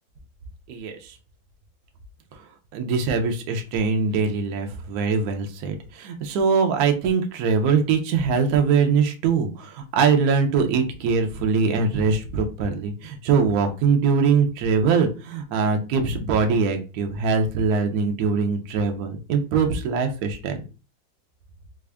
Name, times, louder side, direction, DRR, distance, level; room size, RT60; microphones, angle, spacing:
voice 1, 0.7-1.1 2.3-2.4 2.7-20.6, right 5 dB, 75° right, 5 dB, 0.8 m, -22 dB
3.4 x 2.4 x 3.3 m, 0.32 s
omnidirectional pair, 2.3 m